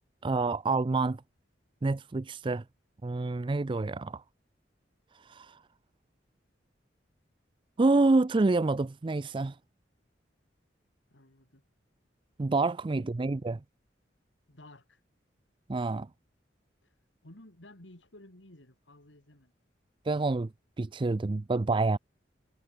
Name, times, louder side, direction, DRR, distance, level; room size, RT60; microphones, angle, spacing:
voice 1, 0.2-1.2 1.8-2.6 3.0-4.2 5.1-5.6 7.8-9.6 12.4-13.6 15.7-16.1 20.0-20.5 20.8-22.0, right 3 dB, 25° right, 0.4 m, -27 dB
voice 2, 11.1-11.7 12.9-13.1 14.5-15.0 16.8-16.9 17.2-19.5, left 1 dB, 85° left, 3.9 m, -54 dB
head